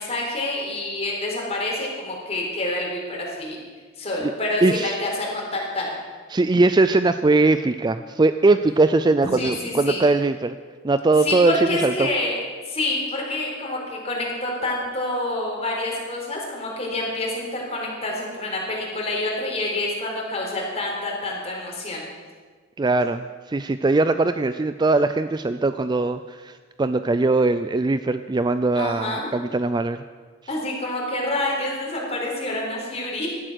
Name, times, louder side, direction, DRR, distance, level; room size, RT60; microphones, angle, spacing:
voice 1, 0.0-3.6 4.0-5.9 9.3-10.0 11.2-12.4 12.6-22.0 28.7-29.3 30.5-33.3, left 2 dB, 30° left, -2 dB, 4.3 m, -27 dB
voice 2, 4.6-5.0 6.3-10.6 10.8-12.1 22.8-30.0, right 3 dB, 20° right, 11 dB, 0.4 m, -20 dB
18.0 x 12.0 x 6.4 m, 1.5 s
head